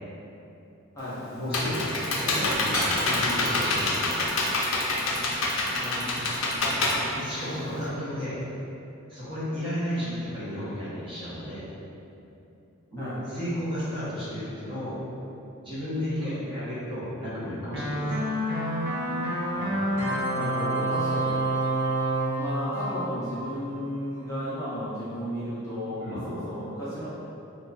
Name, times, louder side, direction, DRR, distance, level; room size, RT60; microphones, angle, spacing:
Computer keyboard, 1.0-7.9, left 2 dB, 65° left, 0.5 m, -27 dB
voice 1, 1.3-1.9 2.2-4.2 6.7-6.8 7.1-8.4 9.1-11.7 12.9-15.0 15.6-18.2 26.0-26.2, equal, 25° right, -10 dB, 0.9 m, -33 dB
Shatter / Crushing, 2.2-6.6, right 1 dB, 75° right, 1.3 m, -39 dB
voice 2, 5.7-6.8 9.9-10.1 13.0-13.2 16.2-16.5 19.5-20.0 20.3-21.4 22.4-27.1, equal, 15° left, -12 dB, 0.6 m, -34 dB
sound 1, 17.7-23.9, right 1 dB, 55° right, 0.6 m, -28 dB
3.0 x 2.3 x 3.9 m, 2.9 s
head